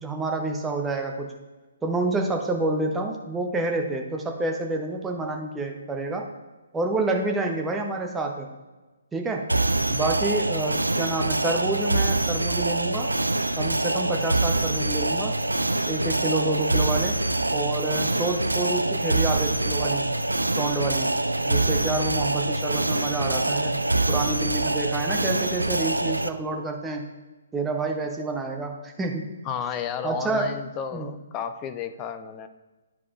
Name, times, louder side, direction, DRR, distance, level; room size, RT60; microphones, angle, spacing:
voice 1, 0.0-1.3 1.8-6.3 6.7-8.6 9.1-9.4 9.9-13.1 13.6-15.3 15.9-17.2 17.5-20.1 20.6-21.2 21.5-23.8 24.1-27.1 27.5-29.4 30.0-30.6 30.9-31.1, right 2 dB, 10° right, 2 dB, 0.8 m, -28 dB
sound 1, 9.5-26.3, right 2 dB, 80° right, 0.3 m, -25 dB
voice 2, 29.4-32.5, left 8 dB, 20° left, 10 dB, 0.4 m, -32 dB
12.0 x 4.7 x 2.5 m, 1.2 s
figure-of-eight pair, 130°, 0 cm